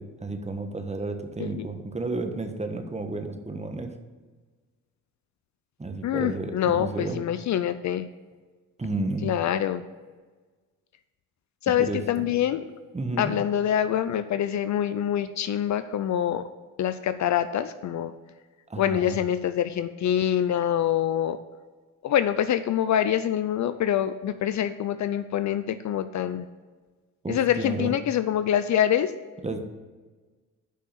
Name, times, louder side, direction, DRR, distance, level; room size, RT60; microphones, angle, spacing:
voice 1, 0.0-4.0 5.8-7.3 8.8-9.3 11.9-12.3 12.9-13.3 18.7-19.2 27.2-28.0 29.4-29.6, right 2 dB, 20° right, 6 dB, 1.2 m, -32 dB
voice 2, 6.0-8.1 9.2-9.8 11.6-12.6 13.2-16.5 16.8-18.1 18.8-21.4 22.0-26.5 27.3-29.1, left 10 dB, 55° left, 12 dB, 0.5 m, -25 dB
6.5 x 5.4 x 7.0 m, 1.3 s
supercardioid pair, 60°, 36 cm